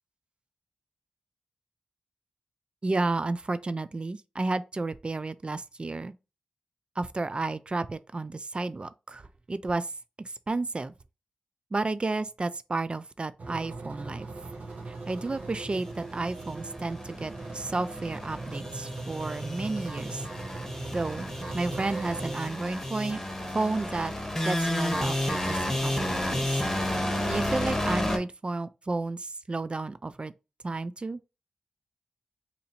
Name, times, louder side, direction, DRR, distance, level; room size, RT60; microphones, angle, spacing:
voice 1, 2.8-6.1 7.0-9.9 10.2-10.9 11.7-14.3 14.9-20.2 20.9-23.2 23.5-24.1 24.4-26.6 27.3-30.3 30.6-31.2, right 3 dB, 40° right, 0.3 m, -32 dB
sound 1, 13.4-22.4, right 3 dB, 65° right, 0.8 m, -40 dB
sound 2, 15.8-28.2, left 1 dB, 15° left, 1.1 m, -32 dB
2.8 x 2.5 x 4.2 m
cardioid pair, 45°, 3 cm